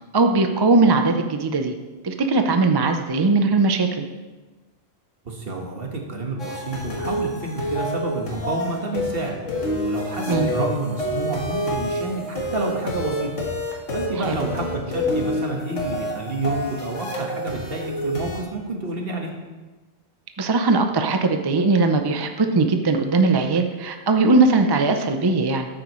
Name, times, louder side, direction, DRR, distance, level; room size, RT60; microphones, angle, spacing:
voice 1, 0.1-1.7 2.0-4.1 10.3-10.5 14.2-14.4 20.4-25.7, right 3 dB, 30° right, 6 dB, 0.4 m, -19 dB
voice 2, 5.2-9.4 9.8-13.4 13.9-19.3, right 2 dB, 50° right, 1 dB, 1.7 m, -29 dB
sound 1, 6.4-18.4, left 1 dB, 80° left, 1.9 m, -28 dB
13.5 x 8.7 x 3.1 m, 1.2 s
omnidirectional pair, 1.3 m